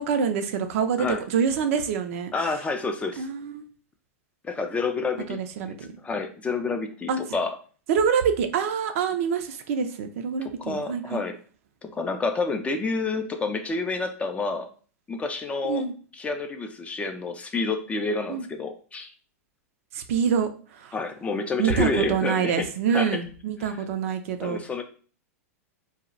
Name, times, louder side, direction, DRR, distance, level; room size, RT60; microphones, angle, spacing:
voice 1, 0.0-2.3 3.2-3.6 5.3-5.9 7.1-7.2 7.9-11.2 15.6-15.9 18.3-18.4 19.9-21.0 21.6-24.6, right 7 dB, 60° right, 7 dB, 0.4 m, -26 dB
voice 2, 2.3-3.3 4.4-5.4 5.7-5.8 6.0-7.5 10.6-11.4 11.8-14.7 15.1-15.9 16.1-19.1 20.9-22.7 22.9-23.2 23.6-23.7 24.4-24.8, left 3 dB, 15° left, 6 dB, 0.3 m, -29 dB
2.1 x 2.0 x 3.7 m, 0.40 s
hypercardioid pair, 105°, 8 cm